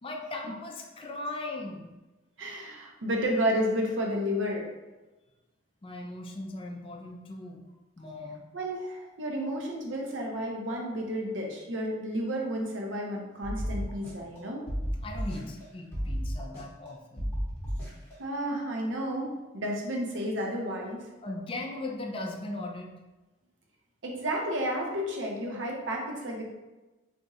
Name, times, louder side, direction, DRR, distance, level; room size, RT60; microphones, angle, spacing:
voice 1, 0.0-1.9 5.8-7.6 8.0-8.5 15.0-17.3 21.2-22.9, left 2 dB, 30° left, 1 dB, 0.4 m, -38 dB
voice 2, 2.4-4.7 8.5-14.6 18.2-21.1 24.0-26.4, equal, 85° right, 0 dB, 0.7 m, -31 dB
sound 1, 13.4-14.4 14.7-15.6 15.9-16.9 17.2-18.1, equal, 15° left, 1.0 m, -33 dB
2.6 x 2.4 x 4.1 m, 1.1 s
head